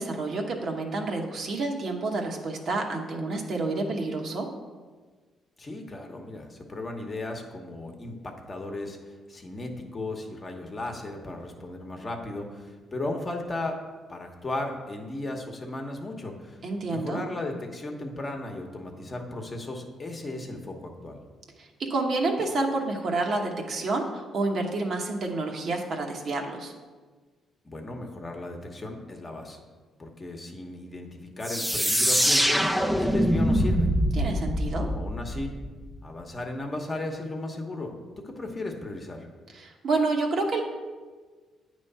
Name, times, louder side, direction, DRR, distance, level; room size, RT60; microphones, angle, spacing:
voice 1, 0.0-4.5 16.6-17.2 21.6-26.7 34.2-34.9 39.5-40.6, right 3 dB, 60° right, 1 dB, 1.0 m, -29 dB
voice 2, 5.6-13.8 14.1-16.6 16.9-21.2 27.6-29.6 30.0-33.9 34.9-35.5 36.0-37.9 38.2-39.3, left 2 dB, 30° left, 2 dB, 1.0 m, -36 dB
sound 1, 31.4-36.0, equal, ahead, 0.5 m, -24 dB
8.8 x 3.1 x 5.5 m, 1.4 s
cardioid pair, 90°, 0 cm